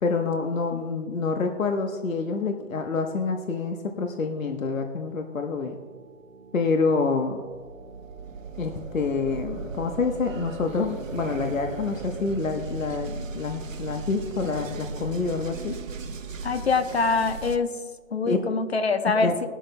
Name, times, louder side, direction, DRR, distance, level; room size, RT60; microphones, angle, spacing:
voice 1, 0.0-5.7 6.5-7.4 8.6-15.7 18.3-18.4 19.1-19.3, left 4 dB, 75° left, 4 dB, 1.2 m, -27 dB
sound 1, 5.2-17.6, right 4 dB, 70° right, 1.0 m, -37 dB
voice 2, 16.4-17.8 18.1-19.5, left 4 dB, 50° left, 9 dB, 1.0 m, -24 dB
20.0 x 11.5 x 2.2 m, 1.5 s
hypercardioid pair, 165°, 41 cm